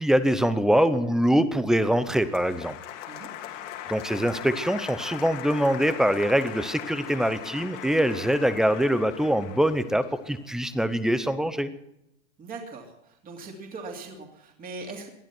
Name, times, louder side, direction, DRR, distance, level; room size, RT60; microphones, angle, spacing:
voice 1, 0.0-2.8 3.9-11.7, equal, ahead, 14 dB, 0.6 m, -24 dB
Applause, 1.8-10.9, left 11 dB, 65° left, 2.5 m, -40 dB
voice 2, 12.4-15.1, right 3 dB, 20° right, 2 dB, 2.8 m, -40 dB
19.5 x 12.0 x 6.0 m, 0.83 s
hypercardioid pair, 140°, 40 cm